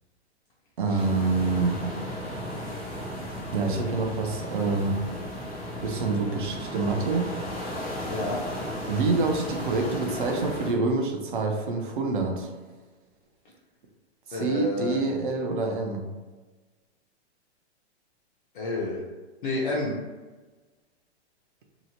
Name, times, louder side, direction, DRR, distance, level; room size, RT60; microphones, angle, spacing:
voice 1, 0.8-1.8 3.5-5.0 5.8-7.3 8.9-12.5 14.3-16.0, right 3 dB, 50° right, 3 dB, 0.5 m, -26 dB
sound 1, 0.9-10.7, equal, 5° left, 0.6 m, -35 dB
voice 2, 8.1-8.4 14.3-15.0 18.5-19.0 19.4-19.9, left 2 dB, 50° left, -5 dB, 0.5 m, -30 dB
2.8 x 2.1 x 2.7 m, 1.3 s
hypercardioid pair, 170°, 34 cm